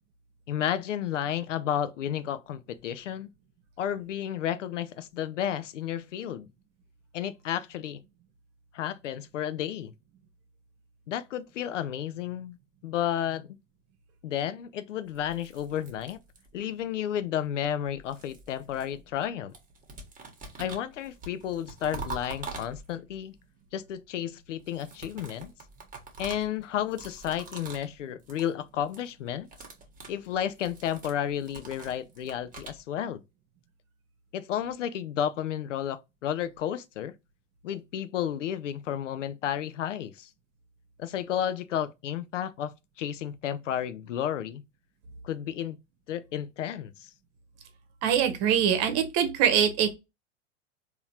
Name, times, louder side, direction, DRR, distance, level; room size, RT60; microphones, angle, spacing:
voice 1, 0.5-3.3 3.8-6.5 7.1-8.0 8.7-9.9 11.1-12.6 12.8-13.6 14.2-16.2 16.5-19.5 20.6-23.3 23.7-25.5 26.2-29.5 30.1-33.2 34.3-37.1 37.6-40.3 41.0-44.6 45.2-45.8 46.1-47.1, left 10 dB, 80° left, 0.6 m, -32 dB
sound 1, 15.1-16.7 17.7-19.3 19.5-23.2 24.6-27.9 28.2-28.5 28.8-29.1 29.4-32.8, right 3 dB, 20° right, 1.4 m, -44 dB
voice 2, 48.0-49.9, right 8 dB, 45° right, 1.1 m, -23 dB
3.9 x 2.9 x 2.9 m
hypercardioid pair, 95°, 36 cm